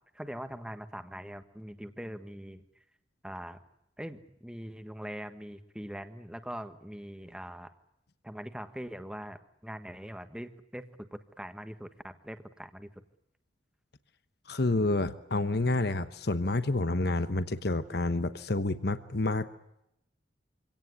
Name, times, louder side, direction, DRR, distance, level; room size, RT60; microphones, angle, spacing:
voice 1, 0.1-2.6 3.2-3.6 4.0-7.7 8.2-12.9, equal, 5° right, 9 dB, 1.5 m, -42 dB
voice 2, 14.5-19.5, left 2 dB, 60° left, 11 dB, 1.1 m, -29 dB
26.0 x 18.0 x 9.7 m, 0.82 s
head